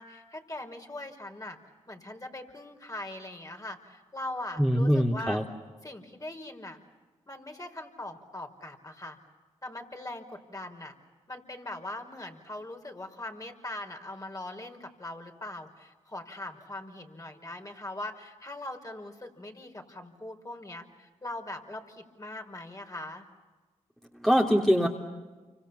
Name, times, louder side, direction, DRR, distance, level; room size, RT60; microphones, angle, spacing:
voice 1, 0.0-1.6 1.9-5.4 5.8-6.8 7.3-9.2 9.6-10.9 11.3-23.3, left 1 dB, 25° left, 4 dB, 5.2 m, -41 dB
voice 2, 4.6-5.4 24.2-24.9, equal, 5° left, 0 dB, 3.4 m, -23 dB
29.5 x 25.5 x 7.2 m, 1.3 s
supercardioid pair, 40°, 14 cm